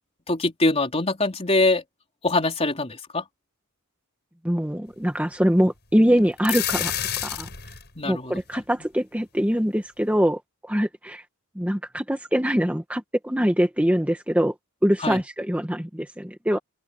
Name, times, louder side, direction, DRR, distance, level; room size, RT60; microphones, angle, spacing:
voice 1, 0.3-1.8 2.2-3.3 8.0-8.6 15.0-15.2, left 2 dB, 30° left, 3.9 m, -23 dB
voice 2, 4.4-6.9 7.2-7.5 8.0-11.2 11.5-14.5 14.8-16.6, equal, 5° right, 1.4 m, -23 dB
sound 1, 6.2-7.9, left 11 dB, 50° left, 6.9 m, -28 dB
open air
head